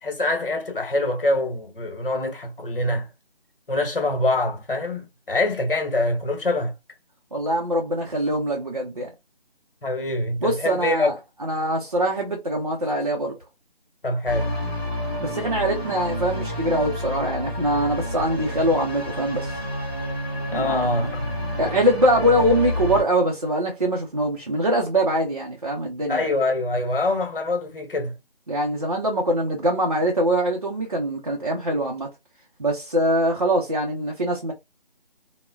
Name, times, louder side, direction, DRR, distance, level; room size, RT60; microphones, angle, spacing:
voice 1, 0.0-3.1 3.7-6.7 9.8-11.1 14.0-14.6 20.5-21.3 26.1-28.1, left 2 dB, 60° left, 1.1 m, -24 dB
voice 2, 7.3-9.1 10.4-11.1 11.4-13.4 15.2-19.6 20.5-21.1 21.6-26.2 28.5-32.1 32.6-34.5, right 1 dB, 40° right, 0.5 m, -23 dB
sound 1, 14.3-23.0, left 1 dB, 10° left, 0.9 m, -29 dB
3.4 x 2.1 x 2.2 m
figure-of-eight pair, 170°, 30 cm